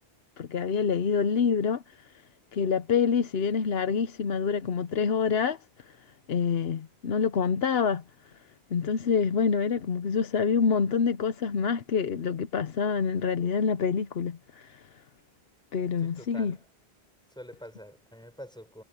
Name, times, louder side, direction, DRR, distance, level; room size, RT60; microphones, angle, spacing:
voice 1, 0.4-2.1 2.5-5.6 5.9-6.0 6.3-8.0 8.7-14.9 15.7-16.5, left 6 dB, 75° left, 1.1 m, -26 dB
voice 2, 16.0-16.7 17.3-18.8, equal, 5° left, 7.0 m, -46 dB
omnidirectional pair, 1.0 m